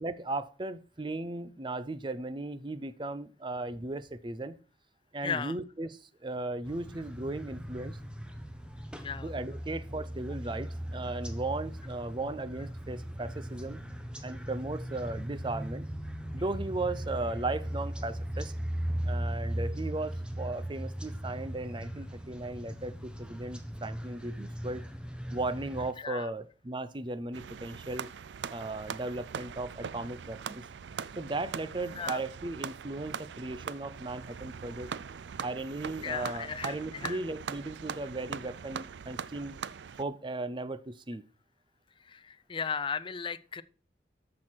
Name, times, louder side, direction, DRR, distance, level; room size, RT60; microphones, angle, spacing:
voice 1, 0.0-4.6 5.1-8.0 9.2-13.8 14.2-15.9 16.3-18.5 19.0-24.8 25.3-28.1 28.5-30.7 31.2-34.9 35.4-39.5 40.0-41.2, right 2 dB, 25° right, 0.6 m, -36 dB
voice 2, 5.2-5.5 9.0-9.3 26.0-26.3 32.0-32.2 36.0-37.2 42.0-43.6, left 6 dB, 30° left, 0.5 m, -36 dB
sound 1, 6.6-25.9, equal, 5° right, 1.0 m, -38 dB
sound 2, 27.3-40.0, right 7 dB, 80° right, 0.4 m, -41 dB
13.5 x 6.3 x 4.5 m
head